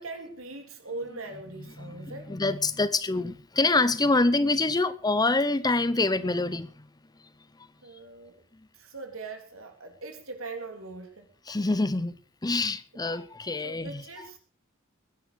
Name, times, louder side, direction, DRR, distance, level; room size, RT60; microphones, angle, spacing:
voice 1, 0.0-2.4 7.8-8.4 8.7-11.3 13.1-13.2 13.6-14.4, right 3 dB, 70° right, 3.6 m, -41 dB
voice 2, 1.8-6.8 11.5-12.1 12.4-14.0, left 3 dB, 20° left, 0.7 m, -26 dB
21.0 x 10.5 x 4.8 m
head